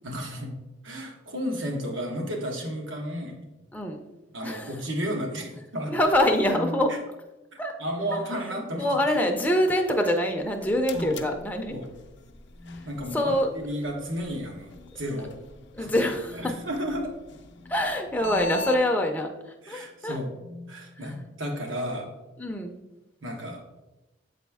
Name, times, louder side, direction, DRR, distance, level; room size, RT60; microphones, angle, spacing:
voice 1, 0.0-0.5 0.8-3.4 4.3-6.0 6.9-7.0 7.8-9.3 10.9-11.2 11.7-11.9 12.8-15.3 15.8-16.1 16.4-17.2 19.6-20.4 20.7-22.1 23.2-23.6, equal, 90° right, 1 dB, 1.2 m, -33 dB
sound 1, 3.6-3.8 4.3-4.8 6.4-7.0 7.9-9.2 9.5-9.8 10.5-10.9 11.3-11.6 12.5-13.1 14.2-14.7 15.1-15.3 16.2-18.8 19.6-19.9 20.3-21.4, left 2 dB, 60° right, 1.2 m, -44 dB
voice 2, 4.4-4.8 5.9-6.9 7.6-7.7 8.7-11.8 13.1-13.5 15.7-16.5 17.7-19.3 19.7-20.2 22.4-22.8, left 1 dB, 10° left, 2 dB, 0.4 m, -25 dB
sound 2, 10.3-18.8, left 2 dB, 65° left, 0.5 m, -42 dB
7.5 x 4.1 x 3.4 m, 1.0 s
head